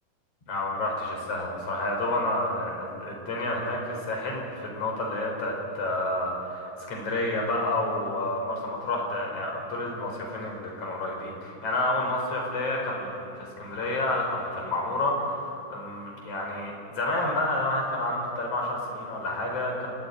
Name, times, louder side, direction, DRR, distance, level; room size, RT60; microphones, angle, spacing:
voice 1, 0.5-19.9, left 2 dB, 55° left, -1 dB, 5.5 m, -29 dB
29.5 x 16.0 x 9.5 m, 2.6 s
omnidirectional pair, 3.4 m